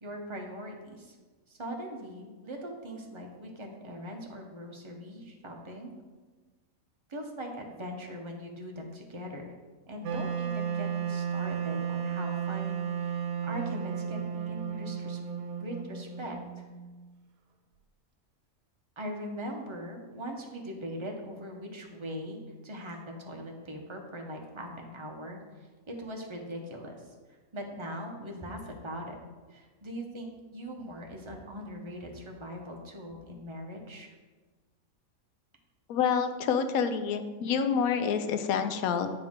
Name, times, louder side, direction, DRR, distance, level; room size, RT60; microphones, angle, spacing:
voice 1, 0.0-1.2 1.5-5.9 7.1-9.5 9.9-15.2 15.6-16.4 19.0-25.4 25.9-27.0 27.5-29.2 29.5-34.1, equal, 25° right, 1 dB, 0.7 m, -40 dB
Wind instrument woodwind instrument, 10.0-17.0, right 7 dB, 80° right, 1.1 m, -34 dB
voice 2, 35.9-39.1, left 7 dB, 80° left, 9 dB, 1.0 m, -28 dB
8.7 x 4.5 x 3.6 m, 1.3 s
omnidirectional pair, 1.5 m